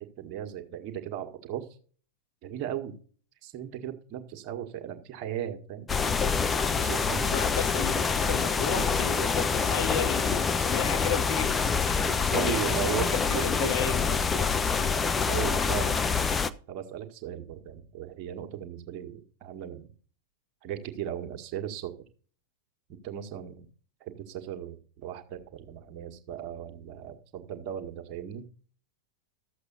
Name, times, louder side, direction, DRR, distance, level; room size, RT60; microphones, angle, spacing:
voice 1, 0.0-1.7 2.4-3.0 3.4-5.9 6.7-7.4 7.8-7.9 8.7-9.0 12.3-14.4 15.3-16.0 16.7-19.9 20.6-21.9 22.9-23.7 24.0-24.8 25.0-28.4, right 10 dB, 40° right, 1.8 m, -37 dB
sound 1, 5.9-16.5, left 5 dB, 15° left, 0.6 m, -26 dB
voice 2, 7.2-12.8 13.1-14.1, left 8 dB, 50° left, 1.7 m, -34 dB
13.0 x 7.9 x 4.1 m
figure-of-eight pair, 90°, 0 cm